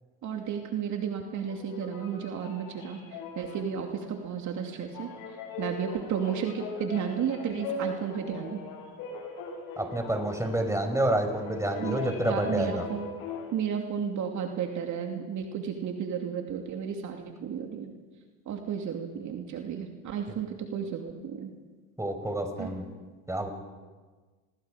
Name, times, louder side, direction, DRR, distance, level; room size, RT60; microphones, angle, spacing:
voice 1, 0.2-3.0 3.4-5.1 5.6-8.6 11.7-13.1 13.5-17.9 18.5-21.5 22.6-22.7, right 7 dB, 55° right, 3 dB, 2.7 m, -33 dB
sound 1, 1.4-13.5, left 4 dB, 75° left, 7.6 m, -40 dB
voice 2, 9.8-12.9 20.3-20.4 22.0-22.9 23.3-23.5, right 1 dB, 10° right, 5 dB, 5.1 m, -28 dB
28.5 x 21.5 x 5.1 m, 1.4 s
supercardioid pair, 80°, 34 cm